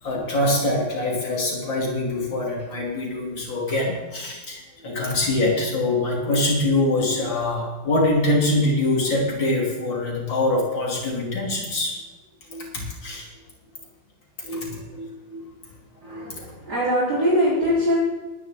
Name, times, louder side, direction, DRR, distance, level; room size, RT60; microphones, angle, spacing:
voice 1, 0.0-12.0 12.5-13.3 14.4-15.4 16.0-16.2, left 2 dB, 75° left, -2 dB, 3.6 m, -24 dB
voice 2, 16.0-18.0, equal, 55° right, -9 dB, 4.3 m, -22 dB
21.5 x 10.5 x 3.7 m, 1.2 s
omnidirectional pair, 2.1 m